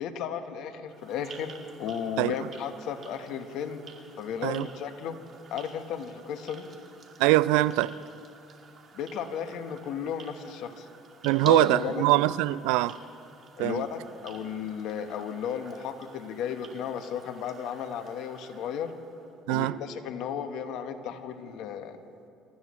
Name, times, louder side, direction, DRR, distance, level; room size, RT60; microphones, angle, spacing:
voice 1, 0.0-3.8 4.2-5.2 5.5-6.7 8.9-10.9 11.4-12.1 13.6-18.9 19.5-22.0, left 8 dB, 70° left, 1.3 m, -34 dB
sound 1, 0.9-19.3, right 5 dB, 50° right, 2.6 m, -51 dB
voice 2, 7.2-7.9 11.2-13.0 13.6-13.8 19.5-19.8, right 17 dB, 85° right, 0.3 m, -23 dB
27.5 x 14.5 x 3.2 m
supercardioid pair, 80°, 0 cm